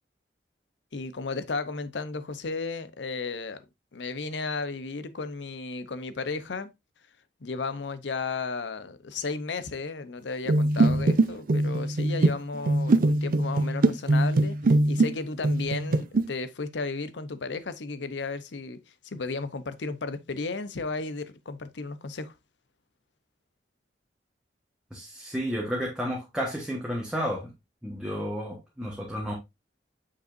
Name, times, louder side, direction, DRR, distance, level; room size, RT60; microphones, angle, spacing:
voice 1, 0.9-3.6 3.9-6.7 7.4-18.8 19.0-22.3, left 4 dB, 80° left, 0.7 m, -34 dB
sound 1, 10.5-15.1 15.4-16.2, right 2 dB, 50° right, 0.5 m, -22 dB
voice 2, 24.9-27.5 27.8-29.3, equal, 5° right, 1.3 m, -32 dB
6.9 x 5.5 x 2.5 m
head